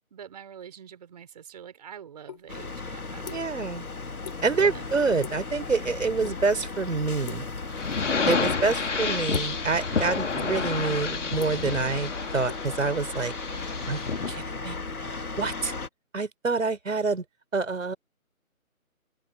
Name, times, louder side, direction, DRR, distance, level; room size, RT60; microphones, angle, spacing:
voice 1, 0.1-3.8 4.6-4.9, right 8 dB, 30° right, 4.3 m, -45 dB
sound 1, 2.3-2.4 2.8-3.7 3.9-4.4 4.7-4.9 5.2-5.5 5.8-6.4 6.6-7.8 8.3-8.7 9.3-9.6 10.1-10.7 11.1-13.3, left 8 dB, 30° left, 4.2 m, -43 dB
sound 2, 2.5-15.9, left 3 dB, 85° left, 2.2 m, -36 dB
voice 2, 3.3-3.9 4.4-7.4 8.3-13.3 13.9-14.0 14.3-14.8 15.4-15.7 16.1-17.2 17.5-18.0, right 4 dB, 60° right, 4.2 m, -27 dB
sound 3, 7.7-14.4, left 5 dB, 55° left, 2.4 m, -30 dB
open air
figure-of-eight pair, 165°, 43 cm